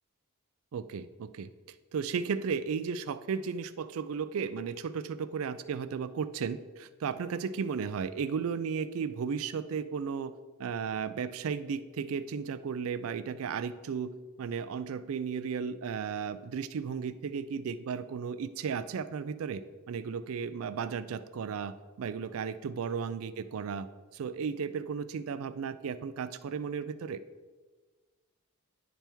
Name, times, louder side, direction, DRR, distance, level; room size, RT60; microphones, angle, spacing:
voice 1, 0.7-1.5 1.9-10.3 10.6-14.1 14.4-23.9 24.1-27.2, right 6 dB, 70° right, 14 dB, 0.4 m, -34 dB
10.0 x 3.4 x 4.4 m, 1.4 s
head